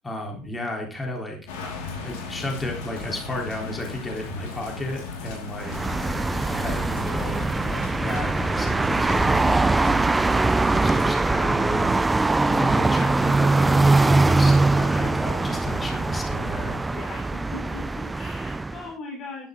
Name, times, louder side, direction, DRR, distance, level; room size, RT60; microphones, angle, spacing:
voice 1, 0.0-1.4 2.0-5.9 6.5-10.1 10.8-16.8, left 1 dB, 15° left, 1 dB, 3.7 m, -33 dB
sound 1, 1.5-11.0, left 4 dB, 85° left, 4.5 m, -36 dB
sound 2, 5.6-18.9, right 2 dB, 15° right, 0.5 m, -22 dB
voice 2, 16.9-19.5, left 3 dB, 50° left, 1 dB, 3.4 m, -39 dB
11.5 x 11.0 x 3.8 m, 0.38 s
supercardioid pair, 115°, 0 cm